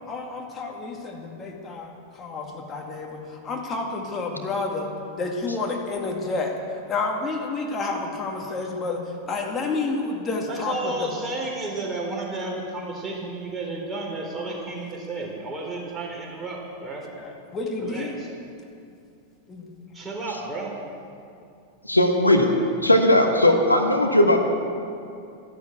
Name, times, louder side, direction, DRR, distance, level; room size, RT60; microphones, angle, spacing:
voice 1, 0.1-4.9 5.2-6.5 6.9-11.1 17.2-18.2 19.5-19.7, left 3 dB, 25° left, 1 dB, 2.3 m, -30 dB
voice 2, 10.5-17.1 17.8-18.3 19.9-20.7, right 2 dB, 15° right, -2 dB, 3.7 m, -32 dB
voice 3, 21.9-22.5 22.8-24.4, left 1 dB, 85° left, 4 dB, 1.3 m, -18 dB
13.0 x 12.0 x 8.1 m, 2.5 s
figure-of-eight pair, 90°, 0 cm